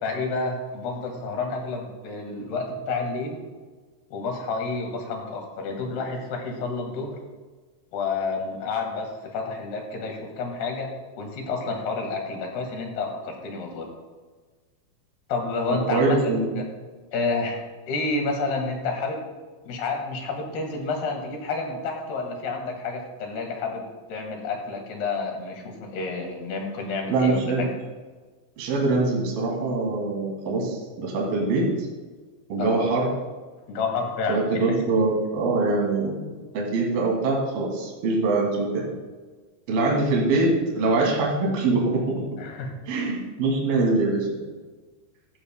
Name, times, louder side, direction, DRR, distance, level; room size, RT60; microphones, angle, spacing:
voice 1, 0.0-3.4 4.1-7.2 7.9-10.9 11.2-13.9 15.3-16.7 17.1-17.6 17.9-19.2 19.7-23.8 24.1-27.7 32.6-32.9 33.7-34.6 42.4-42.7, left 3 dB, 65° left, 2 dB, 3.6 m, -29 dB
voice 2, 15.9-16.5 27.1-27.7 28.6-31.9 32.5-33.1 34.3-36.2 36.5-38.9 39.7-42.0 42.9-44.4, right 3 dB, 60° right, -2 dB, 4.1 m, -23 dB
14.5 x 12.5 x 2.2 m, 1.4 s
omnidirectional pair, 5.2 m